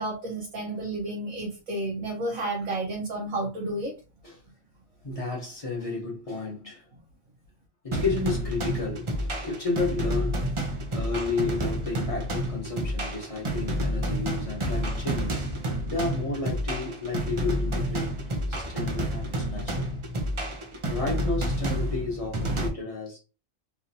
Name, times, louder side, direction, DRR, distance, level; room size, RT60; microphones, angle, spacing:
voice 1, 0.0-3.9, right 2 dB, 85° right, 1.3 m, -31 dB
voice 2, 5.0-6.8 7.8-15.4 15.9-18.1 18.5-19.9 20.9-23.2, left 3 dB, 30° left, 1.1 m, -32 dB
sound 1, 7.9-22.7, equal, 40° right, 0.4 m, -29 dB
3.4 x 2.8 x 2.6 m
omnidirectional pair, 1.4 m